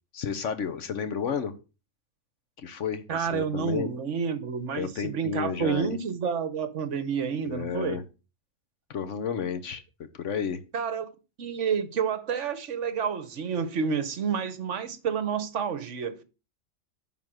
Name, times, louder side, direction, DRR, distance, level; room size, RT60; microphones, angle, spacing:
voice 1, 0.1-1.5 2.6-3.9 4.7-6.0 7.4-8.0 8.9-9.8 10.1-10.6, left 7 dB, 60° left, 1.2 m, -31 dB
voice 2, 3.1-8.0 10.7-11.1 11.4-16.2, right 6 dB, 60° right, 1.2 m, -29 dB
10.5 x 3.8 x 6.3 m
omnidirectional pair, 1.5 m